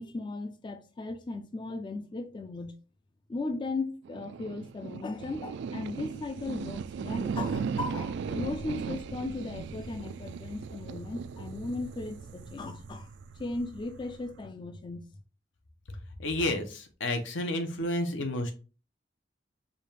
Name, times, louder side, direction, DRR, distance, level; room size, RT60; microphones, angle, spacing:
voice 1, 0.0-2.7 3.3-13.1 13.4-15.0, left 2 dB, 25° left, 0.4 m, -37 dB
sound 1, 4.1-14.5, right 6 dB, 65° right, 0.3 m, -37 dB
voice 2, 16.2-18.5, left 1 dB, 80° left, 0.8 m, -30 dB
5.0 x 2.4 x 3.3 m
head